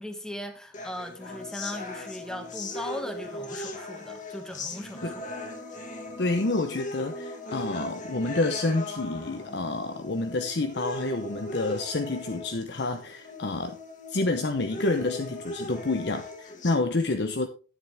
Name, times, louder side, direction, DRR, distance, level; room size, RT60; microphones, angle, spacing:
voice 1, 0.0-5.2, left 1 dB, 5° left, 1.2 m, -38 dB
sound 1, 0.7-16.7, left 2 dB, 40° left, 1.8 m, -39 dB
voice 2, 6.2-13.8 14.1-17.5, left 2 dB, 60° left, 0.8 m, -28 dB
11.0 x 10.0 x 3.5 m
head